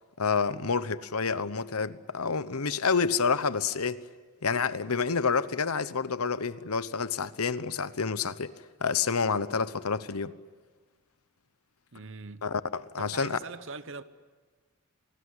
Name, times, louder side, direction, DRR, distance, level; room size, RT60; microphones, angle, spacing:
voice 1, 0.2-4.0 4.4-8.5 8.8-10.3 12.4-13.4, left 5 dB, 80° left, 1.0 m, -28 dB
voice 2, 11.9-12.5 13.0-14.0, right 4 dB, 60° right, 1.0 m, -41 dB
28.0 x 19.5 x 9.8 m
head